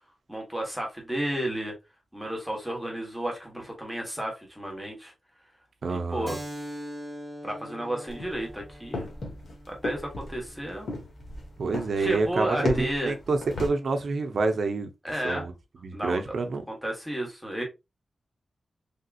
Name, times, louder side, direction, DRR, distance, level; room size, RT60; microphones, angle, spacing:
voice 1, 0.3-1.7 2.1-5.1 5.9-6.4 7.4-9.1 9.7-10.9 12.0-13.1 15.0-15.4 15.9-16.2 16.7-17.6, right 1 dB, ahead, 1.2 m, -32 dB
voice 2, 5.8-6.4 11.6-14.9 15.2-15.5 15.8-16.6, right 3 dB, 65° right, 0.7 m, -28 dB
Keyboard (musical), 6.3-11.4, equal, 25° right, 0.8 m, -42 dB
sound 1, 8.1-13.7, left 2 dB, 60° left, 1.1 m, -35 dB
3.4 x 2.8 x 2.4 m
wide cardioid pair, 115°, 0 cm